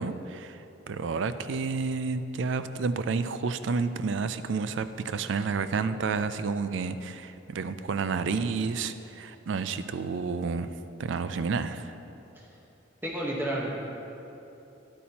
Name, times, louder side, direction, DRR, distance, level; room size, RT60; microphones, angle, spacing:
voice 1, 0.0-10.7 11.0-11.9, right 4 dB, 75° right, 12 dB, 0.4 m, -30 dB
voice 2, 13.0-13.8, right 1 dB, 10° right, -4 dB, 1.1 m, -30 dB
11.0 x 8.3 x 2.9 m, 3.0 s
head